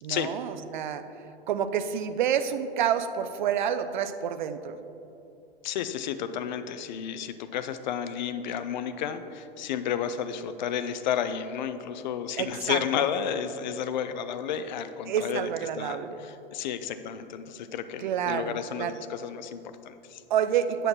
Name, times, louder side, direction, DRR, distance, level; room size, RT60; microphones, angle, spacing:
voice 1, 0.0-1.0 1.5-4.8 12.4-12.8 15.1-16.2 18.0-18.9 20.3-20.9, right 9 dB, 50° right, 10 dB, 0.5 m, -28 dB
voice 2, 5.6-15.5 15.8-20.2, left 8 dB, 50° left, 11 dB, 0.5 m, -32 dB
9.0 x 6.4 x 4.3 m, 2.9 s
figure-of-eight pair, 95°, 30 cm